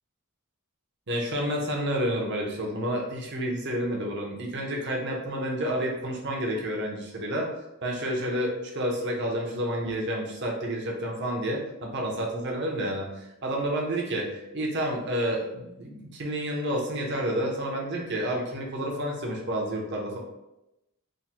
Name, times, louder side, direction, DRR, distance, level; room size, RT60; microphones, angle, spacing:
voice 1, 1.1-7.5 7.8-20.2, equal, 55° right, 0 dB, 0.9 m, -30 dB
3.6 x 2.3 x 4.4 m, 0.91 s
head